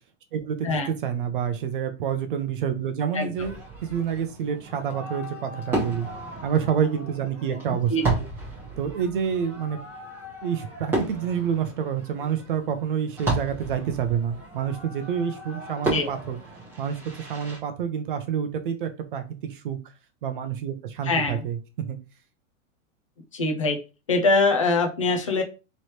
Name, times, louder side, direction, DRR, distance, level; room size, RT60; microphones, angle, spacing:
voice 1, 0.3-6.1 6.4-8.2 8.8-9.8 10.4-16.4 16.8-19.8 20.2-22.0, right 8 dB, 40° right, 8 dB, 0.6 m, -28 dB
Fireworks, 3.3-17.6, right 2 dB, 5° right, 1.0 m, -34 dB
voice 2, 7.7-8.0 15.9-16.1 21.0-21.4 23.3-23.8 24.1-25.4, left 3 dB, 25° left, 4 dB, 0.3 m, -23 dB
3.2 x 3.1 x 4.2 m, 0.30 s
supercardioid pair, 180°, 40 cm